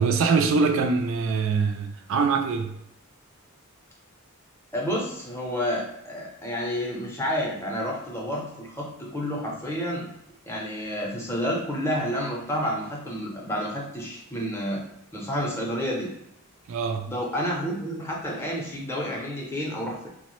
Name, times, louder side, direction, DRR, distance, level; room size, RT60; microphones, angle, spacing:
voice 1, 0.0-2.7 16.7-17.1, right 5 dB, 65° right, 0.3 m, -23 dB
voice 2, 4.7-10.1 10.5-14.8 15.1-16.1 17.1-20.1, equal, 10° left, 0.6 m, -30 dB
2.9 x 2.0 x 3.0 m
head